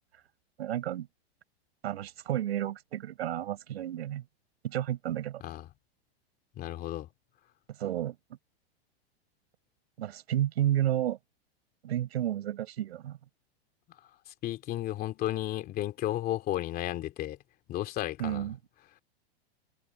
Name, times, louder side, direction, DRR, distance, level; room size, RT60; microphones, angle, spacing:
voice 1, 0.6-1.1 1.8-4.2 4.6-5.4 7.8-8.1 10.0-11.2 11.8-13.2 18.2-18.6, right 12 dB, 80° right, 6.9 m, -31 dB
voice 2, 6.6-7.1 14.4-17.4 17.7-18.5, left 14 dB, 30° left, 2.8 m, -33 dB
supercardioid pair, 150°, 31 cm